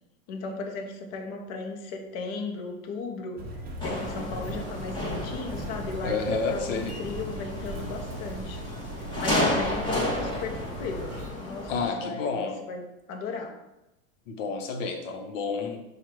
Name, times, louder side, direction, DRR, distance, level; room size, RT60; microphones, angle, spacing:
voice 1, 0.3-3.4 3.8-8.6 9.0-11.2 11.4-12.8 13.1-13.6, left 4 dB, 40° left, 3 dB, 0.7 m, -36 dB
Motor vehicle (road), 3.4-11.3, equal, 25° right, 0.7 m, -38 dB
sound 1, 3.8-11.9, left 1 dB, 10° left, 1.0 m, -32 dB
voice 2, 6.0-7.0 11.7-12.6 14.3-15.8, left 4 dB, 65° left, 5 dB, 0.9 m, -30 dB
4.5 x 2.4 x 4.6 m, 0.94 s
hypercardioid pair, 120°, 40 cm